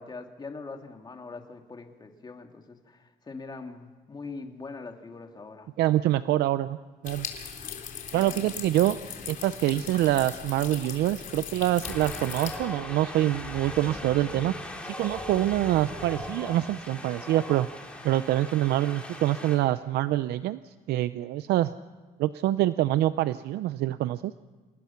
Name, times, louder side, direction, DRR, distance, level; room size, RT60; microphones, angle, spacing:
voice 1, 0.0-5.7 8.1-8.5, left 4 dB, 25° left, 4 dB, 2.6 m, -42 dB
voice 2, 5.8-6.8 7.0-7.3 8.1-9.0 9.3-14.5 14.8-17.7 18.0-21.7 22.2-24.3, right 14 dB, 75° right, 14 dB, 0.6 m, -25 dB
sound 1, 7.0-12.6, left 7 dB, 50° left, 3.5 m, -39 dB
Wind, 11.8-19.6, left 1 dB, 5° left, 4.2 m, -39 dB
28.0 x 19.5 x 5.8 m, 1.3 s
cardioid pair, 110°, 17 cm